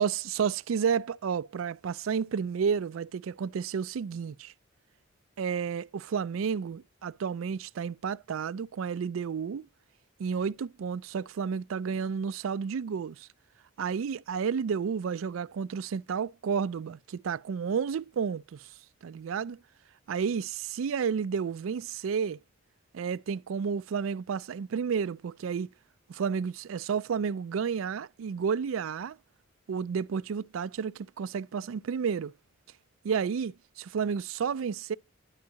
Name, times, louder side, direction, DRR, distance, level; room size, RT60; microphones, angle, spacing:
voice 1, 0.0-4.5 5.4-9.7 10.2-13.3 13.8-18.7 19.0-19.6 20.1-22.4 22.9-25.7 26.1-29.2 29.7-32.3 33.0-35.0, right 6 dB, 85° right, 0.4 m, -31 dB
12.5 x 4.7 x 4.0 m
head